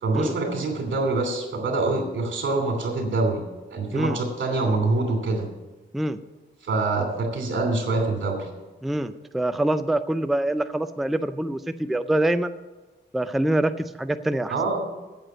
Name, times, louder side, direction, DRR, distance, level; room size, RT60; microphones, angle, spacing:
voice 1, 0.0-3.4 3.7-5.5 6.6-8.5 14.5-14.8, right 3 dB, 85° right, 3 dB, 2.9 m, -25 dB
voice 2, 8.8-12.6 13.1-14.5, right 1 dB, ahead, 10 dB, 0.4 m, -25 dB
9.1 x 7.9 x 7.9 m, 1.2 s
wide cardioid pair, 150°, 19 cm